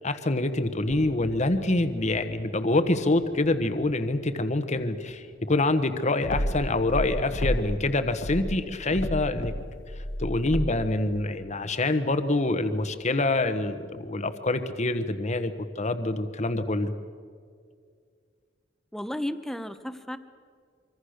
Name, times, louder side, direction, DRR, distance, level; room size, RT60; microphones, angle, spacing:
voice 1, 0.0-9.5 10.2-16.9, left 2 dB, 40° left, 9 dB, 1.2 m, -26 dB
sound 1, 0.9-14.6, equal, 65° right, 4.0 m, -50 dB
sound 2, 6.2-7.8 8.1-10.9, equal, 85° left, 1.6 m, -31 dB
voice 2, 18.9-20.2, left 1 dB, ahead, 10 dB, 1.0 m, -33 dB
25.0 x 25.0 x 6.6 m, 2.1 s
head